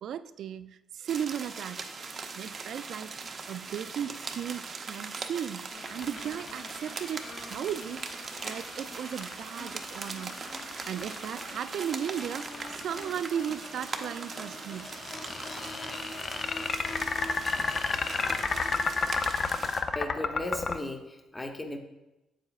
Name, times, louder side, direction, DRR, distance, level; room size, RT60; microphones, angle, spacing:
voice 1, 0.0-10.4 10.7-14.9, right 9 dB, 70° right, 0.3 m, -36 dB
sound 1, 1.1-19.8, right 4 dB, 45° right, 0.7 m, -41 dB
sound 2, 5.7-19.6, left 2 dB, 80° left, 1.6 m, -46 dB
sound 3, 6.0-13.2 14.8-20.8, left 4 dB, 40° left, 0.4 m, -31 dB
voice 2, 19.9-21.8, left 1 dB, 15° left, 0.9 m, -36 dB
7.5 x 7.5 x 2.4 m
cardioid pair, 90°, 0 cm